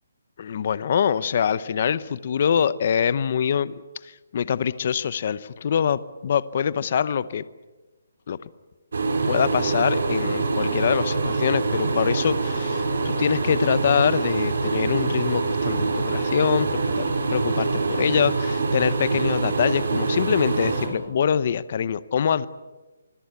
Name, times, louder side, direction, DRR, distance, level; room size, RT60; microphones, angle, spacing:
voice 1, 0.4-3.7 4.3-7.4 8.3-8.4 9.3-22.5, left 8 dB, 35° left, 17 dB, 0.8 m, -24 dB
sound 1, 8.9-20.9, right 3 dB, 65° right, 5.7 m, -25 dB
25.5 x 22.0 x 8.3 m, 1.2 s
hypercardioid pair, 180°, 0 cm